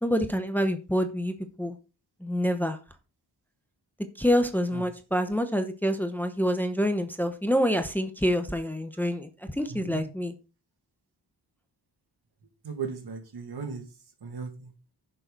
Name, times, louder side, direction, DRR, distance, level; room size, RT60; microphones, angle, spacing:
voice 1, 0.0-1.8 2.2-2.8 4.2-10.3, equal, 5° left, 0.9 m, -27 dB
voice 2, 9.7-10.0 12.6-13.8 14.2-14.7, right 5 dB, 65° right, 2.3 m, -36 dB
10.5 x 6.8 x 4.0 m
wide cardioid pair, 130°, 41 cm